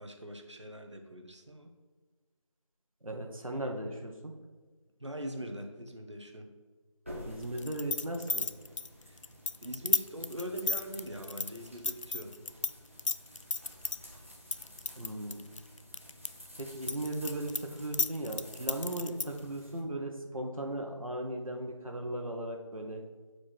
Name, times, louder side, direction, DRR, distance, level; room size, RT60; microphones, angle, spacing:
voice 1, 0.0-1.7 5.0-6.5 9.0-9.2 9.6-12.4, equal, 60° right, 4 dB, 1.2 m, -42 dB
voice 2, 3.0-4.3 7.2-8.5 14.9-15.5 16.6-23.0, right 1 dB, 90° right, 2 dB, 1.4 m, -37 dB
sound 1, 7.0-19.8, equal, 25° right, 0.9 m, -51 dB
sound 2, 7.6-12.7 13.0-14.0 14.5-16.3 16.6-19.4, left 4 dB, 65° left, 0.4 m, -32 dB
8.9 x 4.8 x 4.5 m, 1.4 s
figure-of-eight pair, 180°, 17 cm